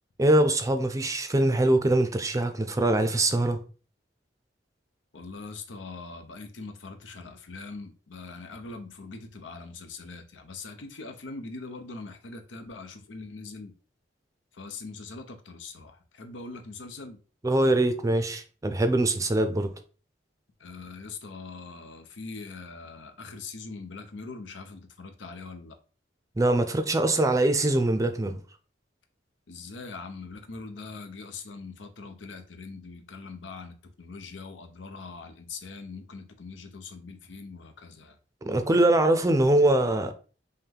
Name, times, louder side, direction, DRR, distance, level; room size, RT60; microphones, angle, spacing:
voice 1, 0.2-3.6 17.4-19.7 26.4-28.4 38.4-40.1, right 1 dB, 20° right, 0.5 m, -23 dB
voice 2, 5.1-13.7 14.5-17.2 20.6-25.8 29.5-38.2, left 3 dB, 90° left, 0.7 m, -42 dB
5.6 x 2.2 x 3.4 m
head